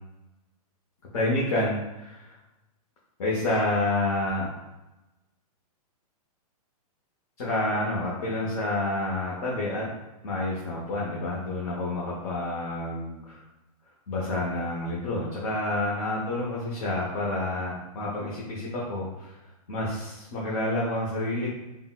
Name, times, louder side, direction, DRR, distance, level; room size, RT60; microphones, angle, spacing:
voice 1, 1.1-2.4 3.2-4.5 7.4-9.8 10.2-13.4 14.1-19.3 19.7-21.6, left 2 dB, 60° left, -5 dB, 0.8 m, -29 dB
3.7 x 2.0 x 2.3 m, 1.0 s
hypercardioid pair, 145°, 20 cm